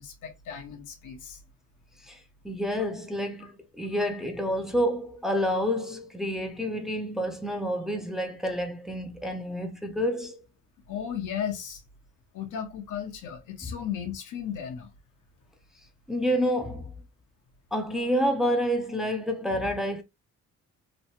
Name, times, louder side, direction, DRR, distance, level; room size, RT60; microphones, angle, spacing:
voice 1, 0.0-1.4 3.4-3.5 10.9-11.8 12.3-14.9, left 8 dB, 85° left, 1.0 m, -35 dB
voice 2, 2.4-10.4 16.1-16.9 17.7-20.0, equal, ahead, 0.5 m, -28 dB
3.2 x 2.2 x 2.8 m
cardioid pair, 90°, 30 cm